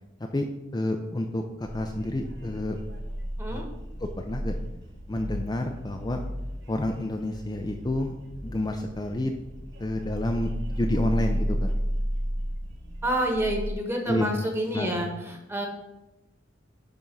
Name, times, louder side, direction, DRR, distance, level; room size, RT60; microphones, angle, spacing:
voice 1, 0.7-2.8 3.5-3.6 4.0-4.6 5.1-6.2 6.7-8.1 8.4-9.3 9.8-11.7 14.1-14.4 14.7-15.0, left 1 dB, 20° left, 3 dB, 0.5 m, -29 dB
sound 1, 1.6-13.7, equal, 65° right, 1.2 m, -33 dB
voice 2, 13.0-15.7, right 1 dB, 10° right, 2 dB, 1.4 m, -28 dB
10.5 x 3.6 x 5.4 m, 0.97 s
head